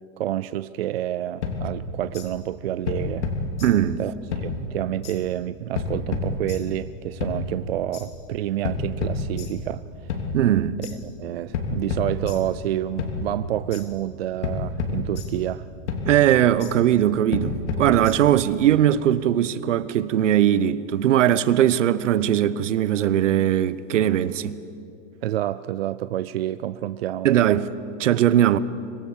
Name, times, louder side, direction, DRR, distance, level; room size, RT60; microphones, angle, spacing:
voice 1, 0.2-3.3 4.0-9.8 10.8-10.9 11.2-15.7 25.2-27.3, right 12 dB, 55° right, 0.5 m, -28 dB
sound 1, 1.4-2.3 2.9-4.0 4.3-5.2 5.7-6.8 7.2-8.1 8.6-9.8 10.1-11.0 11.5-12.7 13.0-13.8 14.4-15.6 15.9-16.7 17.3-18.5, left 3 dB, 65° left, 3.0 m, -30 dB
voice 2, 3.6-4.0 10.3-10.8 16.0-24.6 27.2-27.7 28.0-28.6, right 11 dB, 75° right, 1.0 m, -20 dB
25.0 x 17.5 x 7.2 m
supercardioid pair, 175°, 38 cm